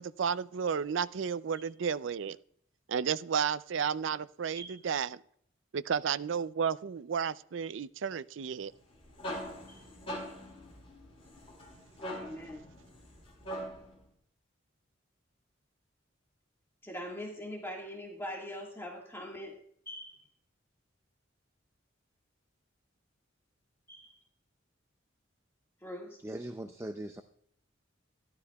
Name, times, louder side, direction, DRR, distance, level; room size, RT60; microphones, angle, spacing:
voice 1, 0.0-2.4 2.9-5.2 5.7-8.7, right 7 dB, 75° right, 0.4 m, -32 dB
sound 1, 8.7-14.0, equal, 30° left, 4.0 m, -42 dB
voice 2, 12.2-12.7 16.8-19.6 19.9-20.2 23.9-24.1 25.8-26.2, equal, 10° left, 1.7 m, -42 dB
voice 3, 26.2-27.2, right 1 dB, 15° right, 0.5 m, -40 dB
13.5 x 12.5 x 2.3 m
head